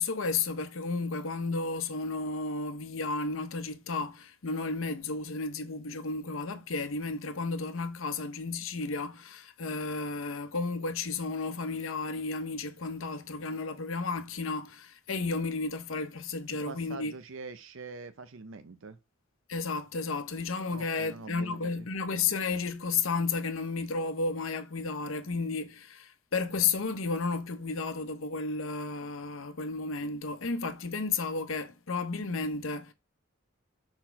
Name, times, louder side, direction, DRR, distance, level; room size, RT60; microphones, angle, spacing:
voice 1, 0.0-17.1 19.5-32.9, left 4 dB, 80° left, 0.8 m, -33 dB
voice 2, 16.5-19.0 20.7-21.9, right 4 dB, 75° right, 0.6 m, -44 dB
4.4 x 4.2 x 5.7 m
head